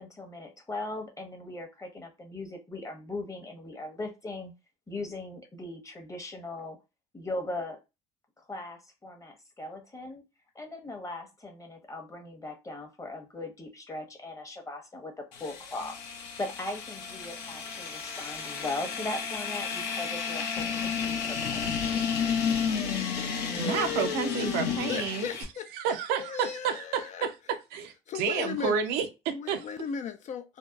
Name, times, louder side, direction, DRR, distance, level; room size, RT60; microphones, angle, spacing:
voice 1, 0.0-4.5 4.9-6.8 7.1-7.8 8.5-10.2 10.5-21.7, left 2 dB, 20° left, 0.8 m, -39 dB
sound 1, 15.3-25.4, left 6 dB, 85° left, 0.6 m, -32 dB
voice 2, 23.6-25.3 25.7-27.3 27.7-29.7, right 7 dB, 75° right, 0.5 m, -30 dB
voice 3, 24.4-25.9 26.2-27.3 28.1-28.8 29.3-30.6, left 7 dB, 50° left, 0.4 m, -36 dB
2.7 x 2.1 x 2.2 m
supercardioid pair, 75°, 16 cm